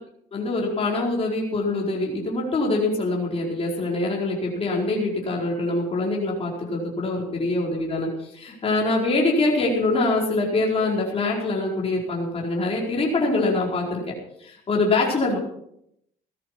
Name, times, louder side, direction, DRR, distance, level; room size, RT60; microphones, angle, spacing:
voice 1, 0.3-14.0 14.4-15.4, left 2 dB, 35° left, -3 dB, 4.7 m, -24 dB
17.0 x 13.0 x 4.7 m, 0.75 s
cardioid pair, 110°, 17 cm